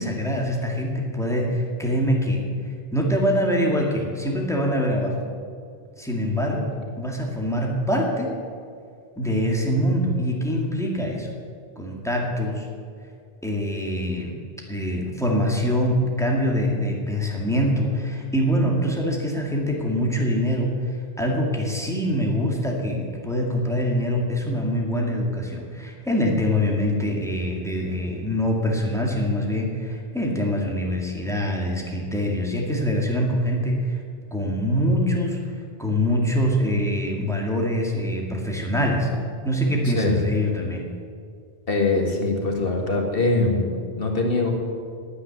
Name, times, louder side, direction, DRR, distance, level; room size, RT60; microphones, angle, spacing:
voice 1, 0.0-2.4 2.9-5.2 6.0-8.3 9.2-11.3 11.8-12.7 13.4-14.3 14.7-34.0 34.3-35.4 35.8-39.1 39.4-40.8, equal, 5° left, -1 dB, 2.1 m, -24 dB
voice 2, 39.8-40.2 41.7-44.5, left 2 dB, 60° left, 1 dB, 2.0 m, -23 dB
9.9 x 9.3 x 9.5 m, 2.3 s
omnidirectional pair, 1.1 m